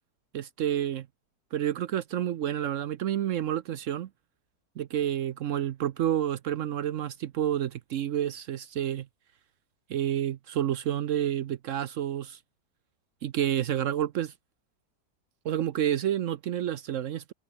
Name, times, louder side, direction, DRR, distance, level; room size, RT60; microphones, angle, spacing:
voice 1, 0.3-1.1 1.5-4.1 4.8-9.1 9.9-12.4 13.2-14.3 15.4-17.3, right 11 dB, 70° right, 0.7 m, -29 dB
omnidirectional pair, 2.0 m